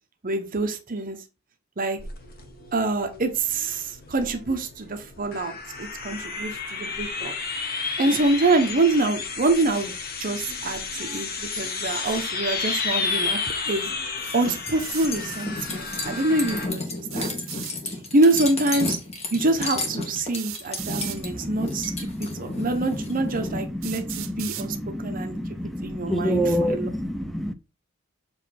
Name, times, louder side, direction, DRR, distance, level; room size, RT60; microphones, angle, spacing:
voice 1, 0.2-1.2 1.8-2.0 2.7-7.3 8.0-13.4 13.7-13.9 14.3-17.3 17.8-19.0 19.3-25.4 25.8-26.9, right 2 dB, 45° right, 0.8 m, -25 dB
sound 1, 2.0-16.7, left 4 dB, 50° left, 1.1 m, -32 dB
sound 2, 14.2-23.6, left 2 dB, 30° left, 1.4 m, -33 dB
sound 3, 14.8-15.1 17.0-17.8 19.2-19.3 20.3-21.2 22.2-22.3 23.0-23.1 23.8-24.7, right 14 dB, 85° right, 0.6 m, -36 dB
voice 2, 20.8-27.5, equal, ahead, 0.6 m, -29 dB
7.2 x 3.1 x 4.2 m
head